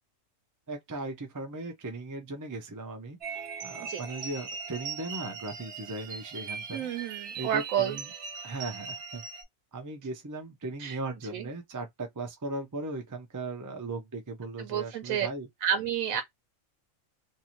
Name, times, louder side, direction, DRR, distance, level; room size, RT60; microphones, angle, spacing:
voice 1, 0.7-8.1 8.4-9.2 9.7-15.5, right 2 dB, 30° right, 0.3 m, -38 dB
sound 1, 3.2-9.4, right 5 dB, 60° right, 0.9 m, -40 dB
voice 2, 6.7-8.0 10.8-11.0 11.3-11.5 14.6-15.3 15.6-16.2, right 9 dB, 90° right, 1.0 m, -30 dB
2.7 x 2.5 x 2.8 m
omnidirectional pair, 1.4 m